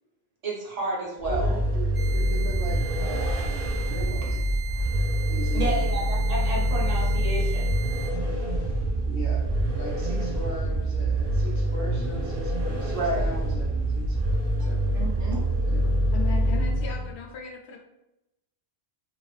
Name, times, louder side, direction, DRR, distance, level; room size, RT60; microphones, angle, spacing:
voice 1, 0.4-1.6 5.5-7.7 12.9-13.2 14.6-14.7 14.9-15.4, right 2 dB, 40° right, -4 dB, 0.9 m, -30 dB
Vehicle, 1.2-17.1, right 1 dB, 60° right, 1.1 m, -25 dB
voice 2, 1.3-4.4 5.3-5.9 9.1-9.5 9.7-14.2 14.6-14.8 15.7-15.9, right 1 dB, 85° right, -2 dB, 1.2 m, -39 dB
sound 1, 1.9-8.1, right 13 dB, 5° right, 1.1 m, -40 dB
voice 3, 15.8-17.8, left 5 dB, 80° left, 1 dB, 0.9 m, -38 dB
3.2 x 2.4 x 2.4 m, 0.90 s
omnidirectional pair, 1.1 m